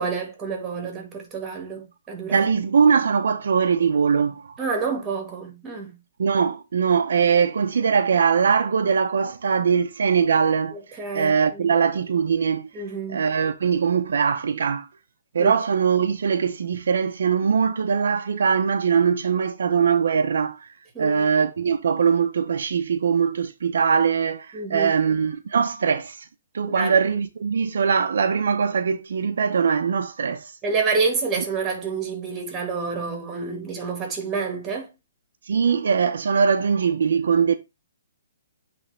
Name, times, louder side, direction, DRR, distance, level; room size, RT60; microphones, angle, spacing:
voice 1, 0.0-2.5 4.6-6.0 10.7-11.7 12.7-13.2 15.4-15.5 20.9-21.4 24.5-24.9 26.8-27.0 30.6-34.9, right 4 dB, 15° right, 1.9 m, -28 dB
voice 2, 2.3-4.5 6.2-10.8 11.1-12.7 13.1-14.9 15.3-20.7 21.0-26.3 26.5-30.5 35.5-37.6, right 6 dB, 70° right, 0.7 m, -21 dB
8.6 x 3.4 x 3.4 m
hypercardioid pair, 160°, 0 cm